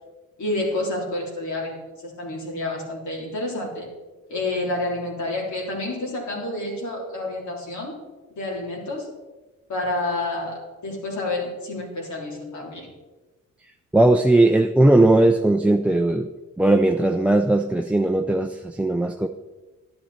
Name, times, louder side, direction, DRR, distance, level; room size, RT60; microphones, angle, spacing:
voice 1, 0.4-3.9 4.3-8.0 8.4-9.1 9.7-12.9, left 2 dB, 70° left, -2 dB, 3.6 m, -29 dB
voice 2, 13.9-16.3 16.6-19.3, right 2 dB, 5° right, 7 dB, 0.3 m, -18 dB
11.5 x 11.0 x 4.3 m, 1.2 s
cardioid pair, 140°, 30 cm